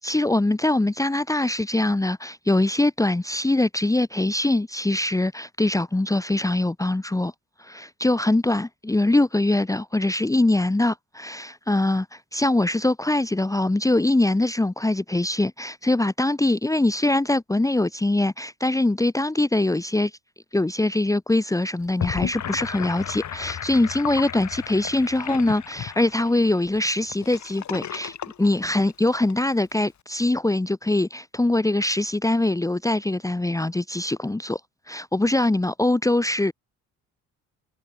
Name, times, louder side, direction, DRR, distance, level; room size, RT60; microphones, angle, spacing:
voice 1, 0.0-7.3 7.6-20.1 20.5-34.6 34.9-36.5, left 2 dB, 10° left, 1.3 m, -23 dB
Gurgling / Sink (filling or washing), 21.8-29.3, left 9 dB, 55° left, 6.2 m, -34 dB
supercardioid pair, 65°, 34 cm